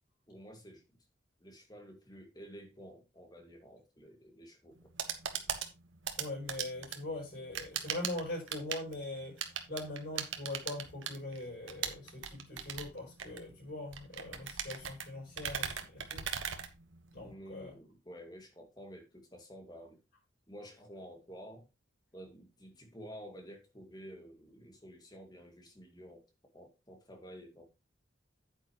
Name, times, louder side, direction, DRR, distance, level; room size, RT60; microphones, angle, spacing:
voice 1, 0.3-0.8 1.4-4.9 17.2-20.0 20.5-21.7 22.1-27.7, equal, 20° left, 2.1 m, -51 dB
sound 1, 4.7-17.3, right 8 dB, 85° right, 1.3 m, -40 dB
voice 2, 6.2-9.4 9.7-16.2 17.1-17.7, left 2 dB, 50° left, 6.8 m, -42 dB
9.1 x 8.7 x 3.0 m
head